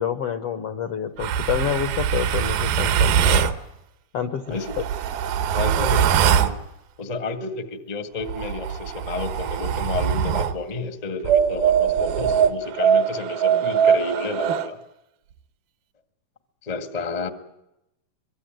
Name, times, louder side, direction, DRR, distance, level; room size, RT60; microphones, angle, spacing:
voice 1, 0.0-3.5 4.1-4.6, left 9 dB, 75° left, 9 dB, 1.3 m, -27 dB
sound 1, 1.2-3.6 4.5-6.6 8.2-10.6 11.2-14.7, right 8 dB, 80° right, 2.9 m, -22 dB
voice 2, 5.5-6.6 7.0-14.8 16.6-17.3, left 3 dB, 45° left, 8 dB, 0.5 m, -31 dB
24.0 x 23.5 x 9.2 m, 0.90 s
omnidirectional pair, 4.3 m